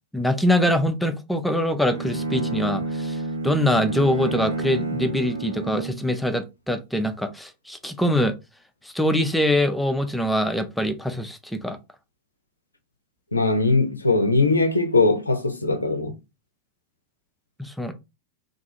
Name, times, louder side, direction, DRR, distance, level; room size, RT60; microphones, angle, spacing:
voice 1, 0.1-8.3 8.8-11.8 17.6-17.9, left 1 dB, 5° left, 0.4 m, -23 dB
Bowed string instrument, 1.8-6.1, right 2 dB, 80° right, 0.7 m, -29 dB
voice 2, 13.3-16.2, left 3 dB, 80° left, 0.4 m, -20 dB
2.5 x 2.3 x 2.7 m
figure-of-eight pair, 90°, 0 cm